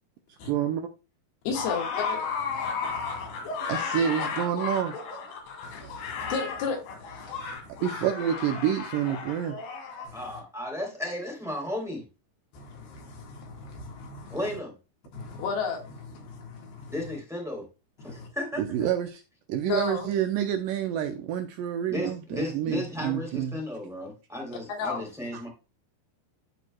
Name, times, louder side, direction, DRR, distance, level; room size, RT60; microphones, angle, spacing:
voice 1, 0.4-0.9 3.6-5.0 7.8-9.6 18.1-18.2 18.6-19.2 19.5-23.6, right 9 dB, 80° right, 2.1 m, -28 dB
voice 2, 1.5-4.4 5.6-7.8 10.1-10.4 12.5-14.4 15.1-17.0 18.0-18.3 19.7-20.1 24.7-25.0, left 5 dB, 85° left, 3.6 m, -35 dB
sound 1, 1.5-10.1, left 5 dB, 70° left, 3.6 m, -34 dB
voice 3, 10.1-12.0 14.3-14.7 16.9-17.6 18.0-18.6 21.9-25.5, left 1 dB, ahead, 2.4 m, -34 dB
13.5 x 4.5 x 2.2 m
omnidirectional pair, 4.3 m